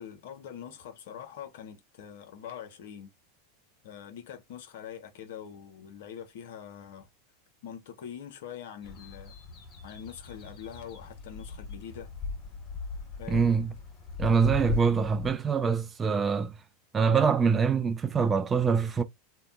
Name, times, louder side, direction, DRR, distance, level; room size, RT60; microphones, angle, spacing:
voice 1, 0.0-3.1 3.8-7.1 7.6-9.4 9.8-12.1 13.2-13.5, left 8 dB, 70° left, 0.7 m, -44 dB
sound 1, 8.8-15.4, left 5 dB, 35° left, 1.5 m, -39 dB
voice 2, 13.3-13.7 14.2-16.6 16.9-19.0, right 5 dB, 20° right, 0.4 m, -24 dB
2.8 x 2.2 x 2.4 m
hypercardioid pair, 100°, 0 cm